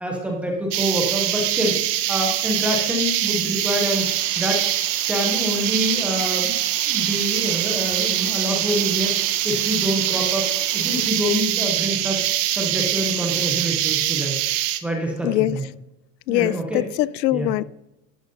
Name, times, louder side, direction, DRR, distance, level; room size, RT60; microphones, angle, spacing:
voice 1, 0.0-1.8 2.1-4.1 4.4-4.6 5.1-6.5 6.9-9.1 9.4-12.2 12.5-14.4 14.8-15.7 16.3-16.8 17.3-17.5, equal, 5° right, 0 dB, 0.4 m, -26 dB
sound 1, 0.7-14.8, right 13 dB, 50° right, 0.8 m, -23 dB
sound 2, 3.8-11.1, left 7 dB, 30° left, 1.6 m, -44 dB
voice 2, 15.2-15.6 16.3-17.6, left 16 dB, 85° left, 20 dB, 0.6 m, -22 dB
13.0 x 9.0 x 2.6 m, 0.92 s
supercardioid pair, 155°, 49 cm